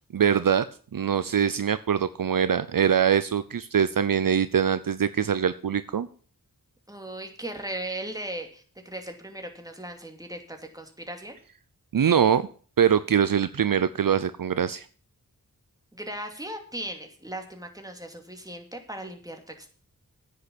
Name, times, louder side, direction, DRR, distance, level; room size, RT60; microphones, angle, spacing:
voice 1, 0.1-0.7 0.9-6.1 11.9-12.4 12.8-14.9, right 8 dB, 65° right, 14 dB, 0.6 m, -23 dB
voice 2, 6.9-11.4 15.9-19.7, right 1 dB, 10° right, 4 dB, 2.6 m, -37 dB
9.7 x 6.8 x 8.5 m, 0.42 s
wide cardioid pair, 60°, 36 cm